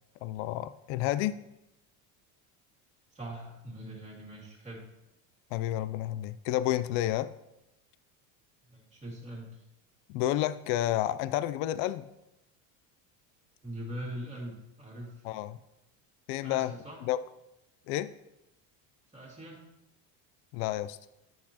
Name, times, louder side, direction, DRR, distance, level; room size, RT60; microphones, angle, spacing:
voice 1, 0.2-1.4 5.5-7.3 10.1-12.0 15.2-15.6 16.3-16.7 17.0-17.2 17.9-18.1 20.5-21.0, left 13 dB, 70° left, 15 dB, 0.5 m, -30 dB
voice 2, 3.1-4.8 8.7-9.6 13.6-15.2 16.4-17.0 19.1-19.6, right 1 dB, 15° right, -2 dB, 2.2 m, -42 dB
10.5 x 6.0 x 2.9 m, 0.89 s
cardioid pair, 130°, 42 cm